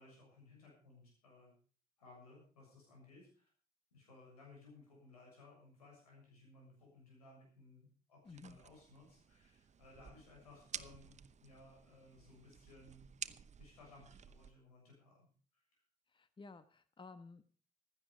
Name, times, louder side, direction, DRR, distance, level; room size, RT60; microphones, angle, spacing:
voice 1, 0.0-1.5 2.0-3.5 3.9-13.1 13.6-15.8, left 2 dB, 90° left, -1 dB, 7.1 m, -60 dB
voice 2, 8.2-8.6 16.1-17.4, left 3 dB, 25° left, 13 dB, 1.1 m, -54 dB
sound 1, 8.3-14.5, right 7 dB, 40° right, 0.8 m, -52 dB
15.5 x 12.0 x 5.0 m, 0.42 s
hypercardioid pair, 50°, 19 cm